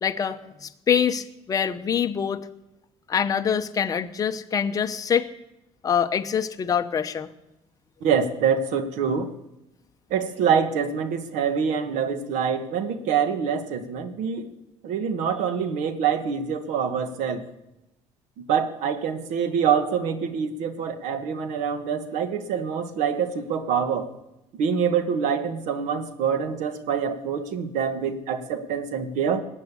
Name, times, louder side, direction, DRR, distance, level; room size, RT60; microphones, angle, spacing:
voice 1, 0.0-2.5 3.1-5.3 5.8-7.3, left 7 dB, 30° left, 8 dB, 0.8 m, -25 dB
voice 2, 8.0-9.3 10.1-14.5 14.8-17.5 18.5-24.1 24.6-29.4, right 7 dB, 75° right, 9 dB, 1.7 m, -25 dB
19.5 x 8.2 x 8.4 m, 0.93 s
cardioid pair, 140°, 12 cm